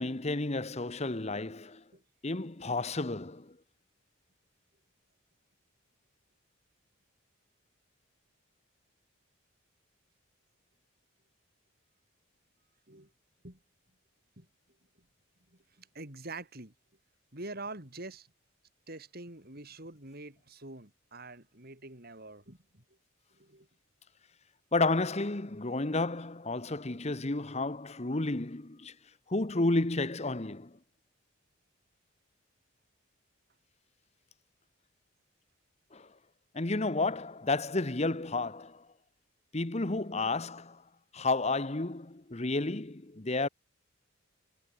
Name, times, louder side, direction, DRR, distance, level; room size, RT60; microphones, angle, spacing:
voice 1, 0.0-1.8 2.2-3.6 24.7-28.9 29.3-30.8 35.9-36.1 36.5-38.9 39.5-40.8 41.1-43.5, left 2 dB, 30° left, 1.1 m, -31 dB
voice 2, 15.8-16.7 17.3-18.3 18.9-22.8 23.4-23.7, right 2 dB, 45° right, 4.4 m, -45 dB
head